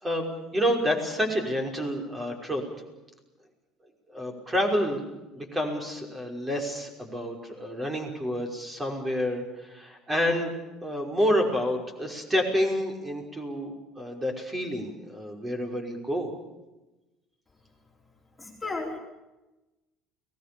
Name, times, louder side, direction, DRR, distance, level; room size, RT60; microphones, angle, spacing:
voice 1, 0.0-2.6 4.1-5.0 5.4-10.5 10.8-16.3, equal, 20° right, 3 dB, 5.6 m, -29 dB
voice 2, 18.4-19.0, left 3 dB, 10° left, 0 dB, 4.4 m, -33 dB
30.0 x 18.5 x 7.1 m, 1.0 s
supercardioid pair, 105°, 0 cm